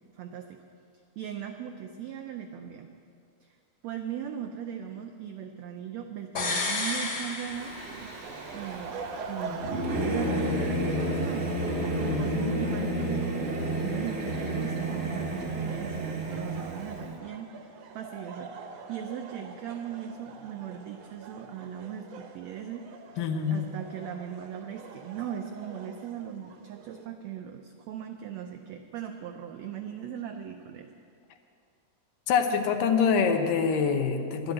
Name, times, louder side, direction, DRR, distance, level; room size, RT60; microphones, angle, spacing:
voice 1, 0.1-0.6 1.2-2.9 3.4-3.6 3.8-7.8 8.5-9.0 9.2-11.5 12.0-22.8 23.5-30.9, right 9 dB, 85° right, 5 dB, 1.5 m, -39 dB
sound 1, 6.4-8.3 8.6-8.7, left 3 dB, 55° left, 3.5 m, -31 dB
Singing / Musical instrument, 7.5-17.1, right 1 dB, 45° right, 0.8 m, -31 dB
sound 2, 7.7-27.1, right 4 dB, 65° right, 1.7 m, -44 dB
voice 2, 11.8-12.5 23.2-23.7 32.3-34.5, left 6 dB, 80° left, 5 dB, 2.6 m, -26 dB
11.5 x 11.0 x 7.9 m, 2.4 s
omnidirectional pair, 3.9 m